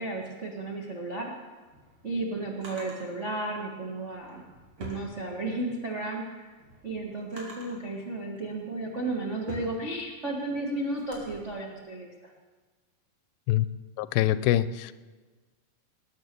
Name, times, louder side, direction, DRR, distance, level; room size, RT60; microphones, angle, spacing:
voice 1, 0.0-1.3 2.0-4.4 4.8-6.5 6.8-12.3, right 2 dB, 60° right, -2 dB, 0.7 m, -33 dB
Drawer open or close, 1.4-3.1 4.1-5.7 6.2-7.9 8.5-11.3, equal, 40° right, 3.4 m, -46 dB
voice 2, 14.0-14.9, left 14 dB, 90° left, 15 dB, 2.4 m, -24 dB
19.0 x 9.1 x 6.8 m, 1.4 s
omnidirectional pair, 4.1 m